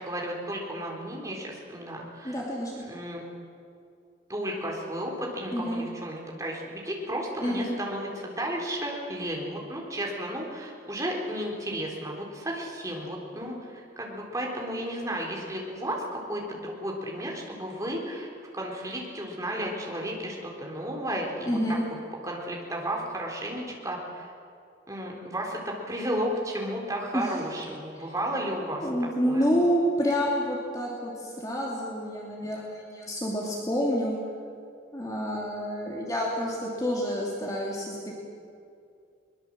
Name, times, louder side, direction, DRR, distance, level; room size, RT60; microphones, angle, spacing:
voice 1, 0.0-2.4 2.8-3.2 4.3-21.8 22.2-24.3 24.9-29.6, right 1 dB, 15° right, -1 dB, 3.7 m, -33 dB
voice 2, 2.2-2.8 5.5-5.8 7.4-7.7 21.5-21.8 27.1-27.3 28.0-28.1 28.8-34.2 34.9-38.1, equal, 20° left, -3 dB, 2.6 m, -28 dB
22.5 x 20.5 x 7.6 m, 2.4 s
head